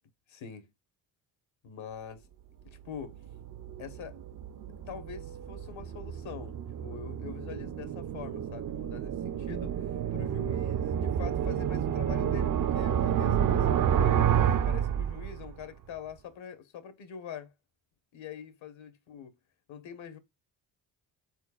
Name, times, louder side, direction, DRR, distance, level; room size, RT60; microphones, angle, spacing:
voice 1, 0.3-0.7 1.6-2.2 2.6-3.2 3.8-4.2 4.9-9.9 10.1-14.3 14.6-17.5 18.1-19.3 19.7-20.2, left 7 dB, 70° left, 1.2 m, -44 dB
sound 1, 2.7-15.6, right 9 dB, 45° right, 0.5 m, -30 dB
4.4 x 4.1 x 2.3 m
cardioid pair, 75°, 48 cm